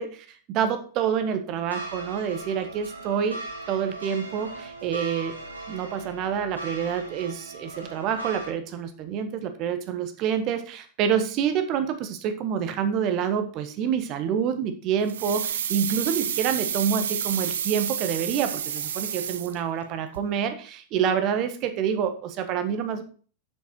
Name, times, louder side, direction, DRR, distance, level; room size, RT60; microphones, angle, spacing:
voice 1, 0.0-3.4 3.7-5.3 5.7-23.0, right 8 dB, 40° right, 8 dB, 1.3 m, -27 dB
sound 1, 1.7-8.5, right 2 dB, 85° right, 2.1 m, -39 dB
sound 2, 15.1-19.9 20.1-20.2, right 9 dB, 65° right, 0.8 m, -30 dB
7.2 x 7.0 x 4.5 m, 0.40 s
figure-of-eight pair, 90°, 0 cm